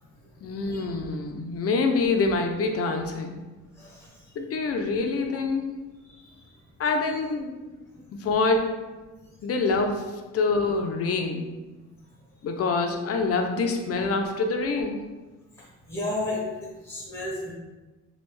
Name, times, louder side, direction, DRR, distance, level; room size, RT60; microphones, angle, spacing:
voice 1, 0.4-3.4 4.4-5.8 6.8-7.6 8.1-8.8 9.4-10.1 10.3-11.5 12.4-15.0, left 3 dB, 50° left, 4 dB, 0.5 m, -26 dB
voice 2, 15.9-16.4 16.8-17.5, left 1 dB, 10° left, -4 dB, 1.0 m, -32 dB
3.2 x 2.3 x 3.1 m, 1.2 s
cardioid pair, 90°, 30 cm